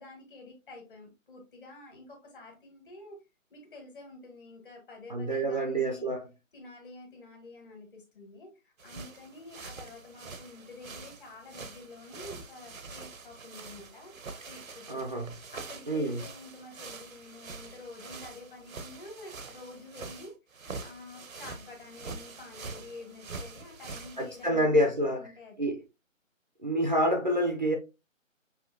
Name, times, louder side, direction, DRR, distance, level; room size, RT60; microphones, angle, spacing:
voice 1, 0.0-3.2 3.5-6.1 6.5-14.1 14.4-15.0 15.5-25.7, left 3 dB, 40° left, 1.8 m, -48 dB
voice 2, 5.1-6.2 14.9-15.3 15.9-16.2 24.2-25.3 25.6-25.8 26.6-27.7, right 1 dB, 35° right, 0.5 m, -27 dB
sound 1, 8.8-24.5, right 4 dB, 85° right, 0.9 m, -45 dB
5.7 x 2.8 x 2.7 m
figure-of-eight pair, 160°, 40 cm